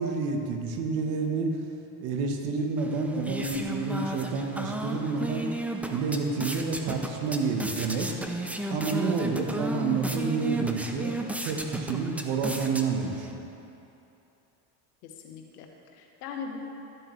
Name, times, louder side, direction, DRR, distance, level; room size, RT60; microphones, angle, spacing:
voice 1, 0.0-1.6 2.0-5.5 5.9-8.2 8.7-11.2 11.4-13.5, right 4 dB, 70° right, 3 dB, 1.3 m, -29 dB
sound 1, 2.8-13.3, right 1 dB, 5° right, 0.5 m, -34 dB
voice 2, 15.0-16.6, left 6 dB, 90° left, 2 dB, 1.2 m, -41 dB
12.5 x 7.7 x 3.2 m, 2.9 s
supercardioid pair, 85°, 46 cm